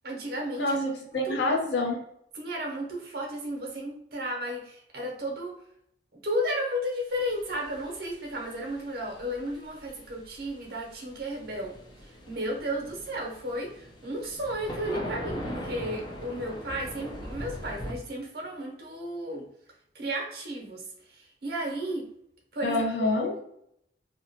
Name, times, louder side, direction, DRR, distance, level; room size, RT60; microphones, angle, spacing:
voice 1, 0.0-0.8 1.2-1.4 2.3-5.5 6.1-11.7 12.0-19.5 19.9-22.1 22.5-22.8 23.2-23.4, equal, 55° right, 0 dB, 0.7 m, -33 dB
voice 2, 0.6-2.0 22.6-23.3, left 2 dB, 65° left, 1 dB, 0.6 m, -27 dB
sound 1, 7.1-17.9, equal, 25° left, 0.4 m, -41 dB
2.9 x 2.1 x 2.7 m, 0.73 s
head